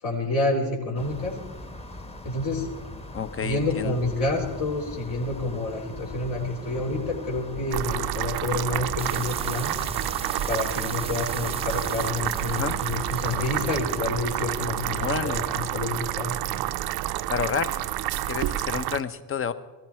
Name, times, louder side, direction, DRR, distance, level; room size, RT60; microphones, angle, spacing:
voice 1, 0.0-1.4 2.2-2.7 3.4-9.8 10.5-16.4, left 2 dB, 60° left, -2 dB, 3.9 m, -28 dB
sound 1, 1.0-15.7, left 1 dB, 15° left, 1.3 m, -40 dB
voice 2, 3.1-3.9 12.4-12.8 15.0-15.5 17.3-17.8 18.3-19.5, left 7 dB, 30° left, 13 dB, 0.9 m, -29 dB
sound 2, 7.7-19.0, right 14 dB, 55° right, 0.6 m, -29 dB
sound 3, 9.0-14.1, right 4 dB, 15° right, 0.6 m, -40 dB
16.5 x 13.5 x 4.4 m, 1.2 s
supercardioid pair, 75°, 45 cm